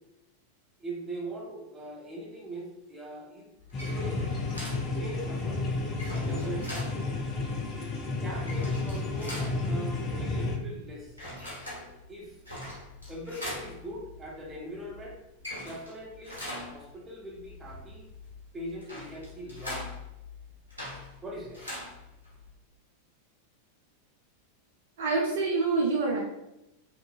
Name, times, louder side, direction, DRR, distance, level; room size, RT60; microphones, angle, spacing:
voice 1, 0.8-3.5 4.0-4.4 4.9-5.6 6.2-6.8 8.2-11.2 12.1-12.4 13.1-15.2 15.6-18.1 18.5-19.8 21.2-21.6, right 1 dB, 15° right, -3 dB, 0.8 m, -41 dB
sound 1, 3.6-22.5, left 1 dB, 85° right, 0.9 m, -43 dB
sound 2, 3.7-10.6, left 3 dB, 30° left, 0.5 m, -31 dB
voice 2, 25.0-26.2, right 3 dB, 55° right, -1 dB, 0.5 m, -26 dB
2.8 x 2.6 x 2.5 m, 0.89 s
figure-of-eight pair, 90°, 0 cm